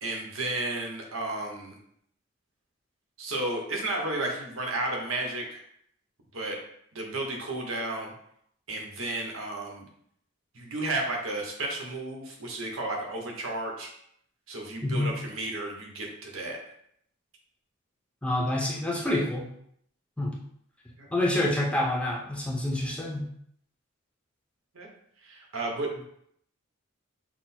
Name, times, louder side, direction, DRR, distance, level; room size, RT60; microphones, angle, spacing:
voice 1, 0.0-1.7 3.2-5.6 6.3-6.6 6.9-8.1 8.7-9.9 10.5-13.9 14.5-16.6 21.0-21.1 24.7-24.9 25.2-26.0, right 2 dB, 80° right, 0 dB, 1.1 m, -33 dB
voice 2, 18.2-19.5 20.2-20.3 21.1-23.2, left 1 dB, 5° left, -4 dB, 0.7 m, -27 dB
6.1 x 2.0 x 4.3 m, 0.69 s
head